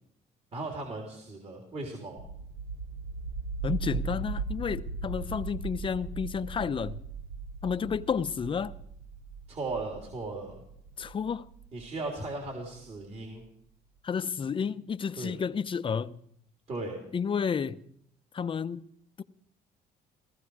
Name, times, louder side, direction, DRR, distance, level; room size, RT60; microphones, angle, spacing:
voice 1, 0.5-2.2 9.5-10.6 11.7-13.4 15.2-15.4 16.7-17.0, right 2 dB, 40° right, 3.5 m, -37 dB
sound 1, 2.2-12.9, right 4 dB, 90° right, 4.0 m, -38 dB
voice 2, 3.6-7.0 7.6-8.7 11.0-11.5 14.0-16.2 17.1-17.8 18.3-18.8 19.2-19.3, left 6 dB, 30° left, 0.7 m, -31 dB
17.0 x 15.0 x 4.8 m
cardioid pair, 110°, 17 cm